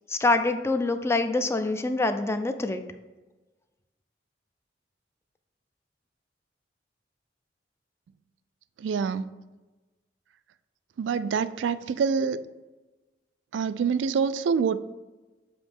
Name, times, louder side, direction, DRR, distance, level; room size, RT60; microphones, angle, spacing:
voice 1, 0.1-2.8, left 2 dB, 15° left, 8 dB, 0.3 m, -25 dB
voice 2, 8.8-9.3 11.0-12.4 13.5-14.8, right 6 dB, 75° right, 15 dB, 0.3 m, -26 dB
7.1 x 3.0 x 5.0 m, 1.2 s
head